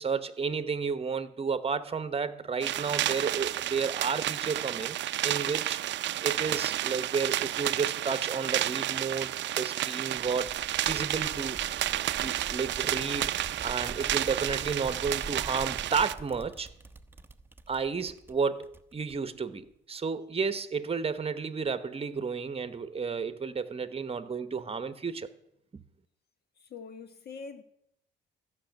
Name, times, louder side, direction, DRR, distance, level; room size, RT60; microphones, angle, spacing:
voice 1, 0.0-5.0 5.2-5.8 6.2-10.5 10.9-11.6 12.2-13.3 13.6-16.7 17.7-25.3 25.7-25.8, right 5 dB, 30° right, 1.0 m, -32 dB
sound 1, 2.6-16.1, right 13 dB, 65° right, 0.5 m, -31 dB
sound 2, 10.2-19.4, right 2 dB, 10° right, 0.8 m, -45 dB
voice 2, 26.6-27.6, left 5 dB, 55° left, 1.4 m, -43 dB
14.5 x 6.2 x 9.1 m
cardioid pair, 90°, 20 cm